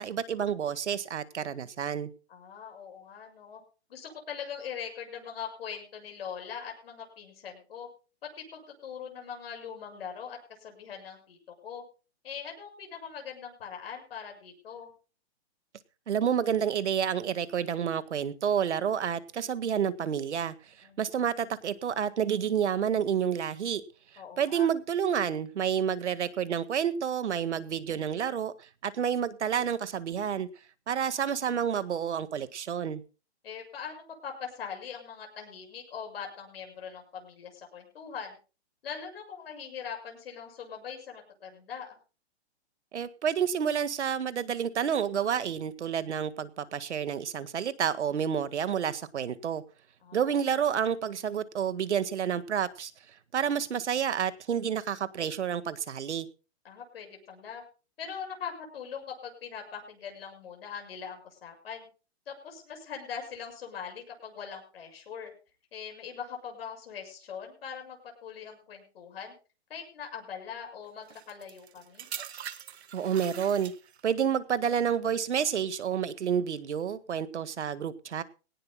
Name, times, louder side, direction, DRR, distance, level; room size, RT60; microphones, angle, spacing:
voice 1, 0.0-2.1 16.1-23.8 24.4-30.5 30.9-33.0 42.9-49.6 50.1-52.9 53.3-56.3 72.9-73.7 74.0-78.2, right 8 dB, 85° right, 14 dB, 1.7 m, -29 dB
voice 2, 2.3-3.6 3.9-7.9 8.2-11.4 11.6-11.8 12.2-14.9 20.8-21.0 24.2-24.7 33.4-38.4 38.8-42.0 50.0-50.5 56.6-57.6 58.0-61.9 62.3-65.3 65.7-69.3 69.7-72.1, left 7 dB, 60° left, 3 dB, 6.9 m, -41 dB
sound 1, 71.1-74.2 74.9-75.2, right 9 dB, 70° right, 1.6 m, -43 dB
20.5 x 18.0 x 2.2 m, 0.34 s
hypercardioid pair, 165°, 34 cm